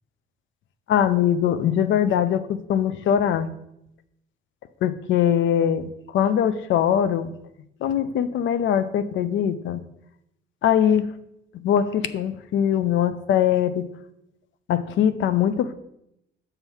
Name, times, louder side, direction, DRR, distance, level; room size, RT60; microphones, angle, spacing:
voice 1, 0.9-3.5 4.8-7.3 7.8-9.8 10.6-11.1 11.6-13.9 14.7-15.7, left 9 dB, 75° left, 13 dB, 0.6 m, -22 dB
6.7 x 5.6 x 4.5 m, 0.80 s
cardioid pair, 90°, 20 cm